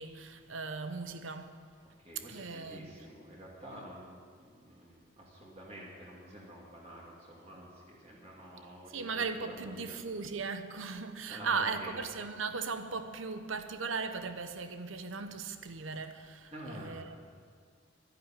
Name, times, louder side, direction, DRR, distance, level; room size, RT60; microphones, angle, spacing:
voice 1, 0.0-1.6 2.1-3.0 8.9-17.2, right 4 dB, 85° right, 0.9 m, -37 dB
voice 2, 2.0-9.9 11.3-11.9 16.5-17.0, right 1 dB, 30° right, 2.5 m, -48 dB
12.0 x 10.5 x 8.9 m
head